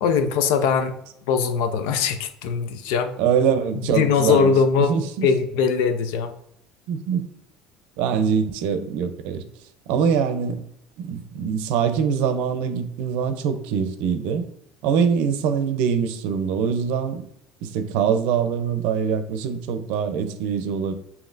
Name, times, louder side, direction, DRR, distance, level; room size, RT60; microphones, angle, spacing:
voice 1, 0.0-0.9 1.3-3.4 3.9-4.9 5.2-6.3, left 6 dB, 80° left, 9 dB, 0.6 m, -21 dB
voice 2, 3.2-5.3 6.9-7.3 8.0-9.4 9.9-10.6 11.0-14.5 14.8-17.2 17.6-20.9, right 7 dB, 75° right, 9 dB, 0.6 m, -23 dB
7.2 x 2.8 x 2.6 m, 0.74 s
cardioid pair, 125°, 2 cm